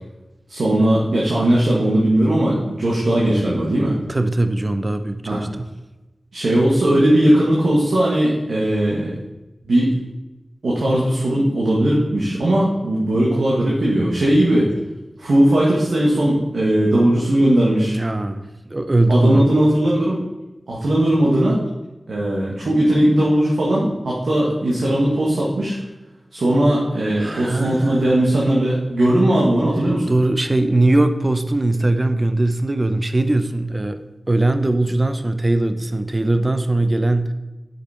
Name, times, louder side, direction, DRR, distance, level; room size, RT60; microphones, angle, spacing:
voice 1, 0.5-4.0 5.3-5.4 6.3-9.2 9.6-9.9 10.6-14.7 15.2-18.0 19.1-20.2 20.7-21.6 22.1-25.8 26.3-30.1, right 1 dB, 90° right, -5 dB, 1.7 m, -18 dB
voice 2, 4.1-5.7 17.9-19.4 27.2-28.3 30.1-34.0 34.3-37.3, right 2 dB, 30° right, 9 dB, 0.6 m, -20 dB
8.4 x 6.5 x 4.4 m, 1.1 s
wide cardioid pair, 70°, 0 cm